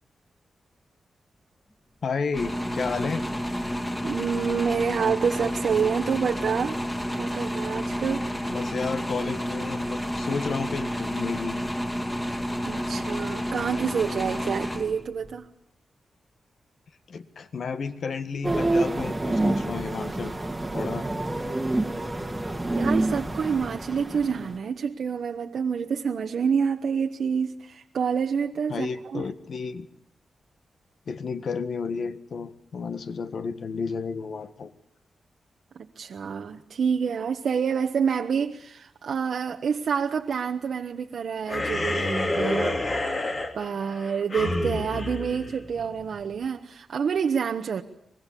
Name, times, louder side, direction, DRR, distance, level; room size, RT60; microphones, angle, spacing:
voice 1, 2.0-3.3 8.5-11.6 17.1-20.5 20.7-21.1 28.7-29.9 31.1-34.7, left 5 dB, 60° left, 1.6 m, -32 dB
sound 1, 2.3-15.3, equal, 15° left, 2.9 m, -30 dB
voice 2, 4.0-6.8 7.1-8.3 12.7-15.5 22.7-29.3 35.7-42.8 43.5-47.8, right 6 dB, 65° right, 1.1 m, -27 dB
sound 2, 18.4-24.6, right 2 dB, 10° right, 1.8 m, -27 dB
sound 3, 41.5-46.2, left 2 dB, 35° left, 3.1 m, -29 dB
24.5 x 21.0 x 8.6 m
wide cardioid pair, 135°, 0 cm